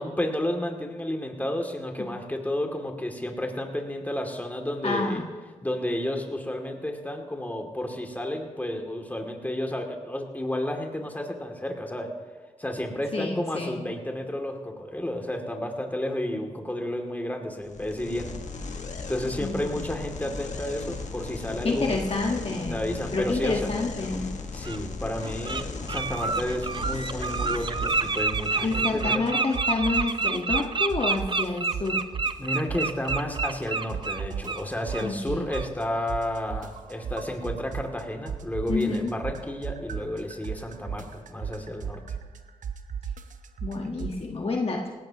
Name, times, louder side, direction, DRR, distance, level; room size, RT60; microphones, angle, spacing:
voice 1, 0.0-5.2 5.6-12.1 12.6-18.3 19.1-22.0 22.7-23.7 24.5-29.3 32.4-42.0, left 1 dB, 10° left, 2 dB, 2.5 m, -31 dB
voice 2, 4.8-5.3 13.1-13.8 19.4-19.7 21.6-24.3 28.6-32.0 35.0-35.4 38.7-39.1 43.6-44.8, left 3 dB, 45° left, 1 dB, 1.5 m, -28 dB
sound 1, 17.6-29.1, left 4 dB, 65° left, 1.5 m, -37 dB
Bird, 23.8-23.9 24.6-24.8 25.2-25.6 25.9-34.6 34.9-35.1 35.5-35.7, right 4 dB, 35° right, 0.7 m, -28 dB
sound 2, 26.8-27.1 27.4-29.3 29.5-31.5 31.7-33.6 33.9-38.0 38.3-44.2, right 7 dB, 75° right, 0.9 m, -35 dB
18.5 x 16.5 x 3.0 m, 1.4 s
cardioid pair, 50°, 13 cm